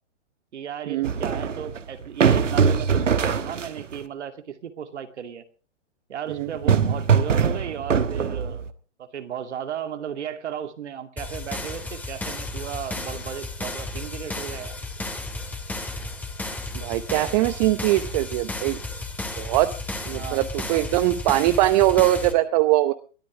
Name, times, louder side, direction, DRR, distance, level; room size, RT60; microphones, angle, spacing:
voice 1, 0.5-5.4 6.1-8.7 9.0-14.8 20.1-20.4, right 8 dB, 70° right, 8 dB, 2.4 m, -35 dB
sound 1, 1.0-4.0 6.3-8.7, right 6 dB, 85° right, 1.5 m, -22 dB
voice 2, 6.3-6.7 16.7-18.8 19.4-19.7 20.1-22.9, right 15 dB, 35° right, 12 dB, 0.9 m, -21 dB
sound 2, 11.2-22.3, left 2 dB, 5° left, 2.3 m, -33 dB
22.0 x 13.5 x 3.7 m, 0.38 s
hypercardioid pair, 125°, 37 cm